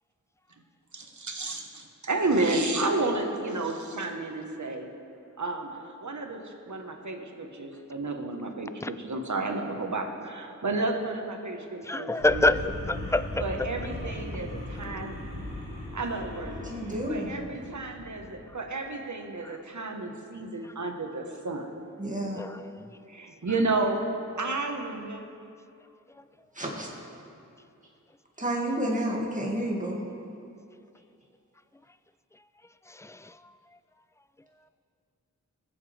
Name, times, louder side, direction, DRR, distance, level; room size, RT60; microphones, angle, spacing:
voice 1, 0.9-4.9 5.4-12.5 13.4-15.2 15.9-16.6 17.1-21.7 23.1-25.2, right 2 dB, 65° right, 3 dB, 1.4 m, -31 dB
voice 2, 11.8-13.7 19.4-19.5 22.4-22.8 32.9-33.3, left 2 dB, 10° left, 13 dB, 0.3 m, -27 dB
sound 1, 12.2-18.5, left 1 dB, 85° left, 2.1 m, -38 dB
voice 3, 16.6-17.4 22.0-22.4 26.5-26.9 28.4-30.0, right 1 dB, 25° right, -2 dB, 2.3 m, -30 dB
20.5 x 7.5 x 3.4 m, 2.5 s
wide cardioid pair, 55°, 32 cm